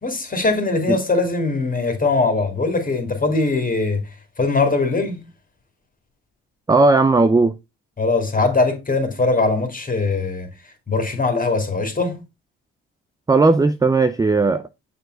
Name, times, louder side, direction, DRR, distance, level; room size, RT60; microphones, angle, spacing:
voice 1, 0.0-4.1 4.4-5.3 8.0-10.5 10.9-12.2, left 3 dB, 25° left, 2.4 m, -21 dB
voice 2, 6.7-7.5 13.3-14.7, right 3 dB, 10° right, 0.5 m, -16 dB
6.8 x 4.4 x 3.8 m
supercardioid pair, 60°, 32 cm